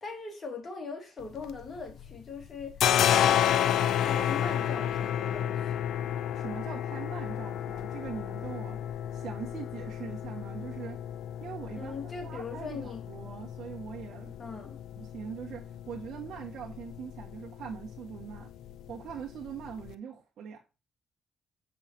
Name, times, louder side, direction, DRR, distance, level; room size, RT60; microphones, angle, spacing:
voice 1, 0.0-2.9 3.2-5.8 11.8-13.0 14.4-14.8, left 4 dB, 35° left, 2.8 m, -41 dB
sound 1, 1.2-2.2 2.4-19.9, left 10 dB, 75° left, 0.5 m, -32 dB
voice 2, 6.3-8.8 9.1-11.0 11.4-11.9 12.2-14.3 15.0-18.5 18.9-20.6, right 7 dB, 65° right, 1.3 m, -42 dB
7.3 x 5.7 x 4.3 m
cardioid pair, 90°, 0 cm